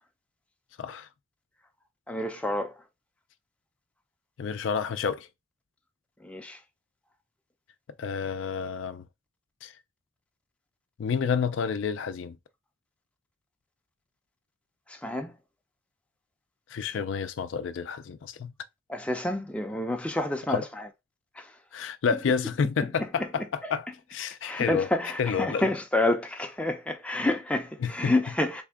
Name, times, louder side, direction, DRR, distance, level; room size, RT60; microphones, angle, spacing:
voice 1, 0.8-1.1 4.4-5.3 8.0-9.0 9.6-9.7 11.0-12.4 16.7-18.5 20.5-20.6 21.7-24.9 25.2-25.7 27.8-28.2, left 6 dB, 75° left, 0.4 m, -29 dB
voice 2, 2.1-2.8 6.2-6.6 14.9-15.3 18.9-20.6 21.4-21.5 23.2-23.3 23.6-23.7 24.4-28.6, left 1 dB, 5° left, 0.4 m, -28 dB
3.5 x 2.1 x 3.5 m
head